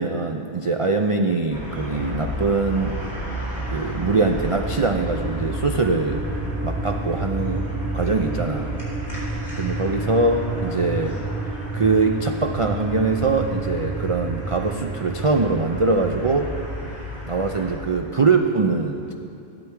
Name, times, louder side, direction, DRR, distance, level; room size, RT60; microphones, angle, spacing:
voice 1, 0.0-3.0 3.7-6.2 6.6-7.7 7.9-8.7 9.6-11.2 11.7-16.5 17.3-19.1, right 3 dB, 55° right, 4 dB, 0.3 m, -22 dB
sound 1, 1.5-17.8, equal, 35° left, 3.8 m, -33 dB
sound 2, 3.6-16.8, right 3 dB, 15° right, 1.1 m, -31 dB
14.0 x 11.5 x 4.6 m, 2.6 s
omnidirectional pair, 1.3 m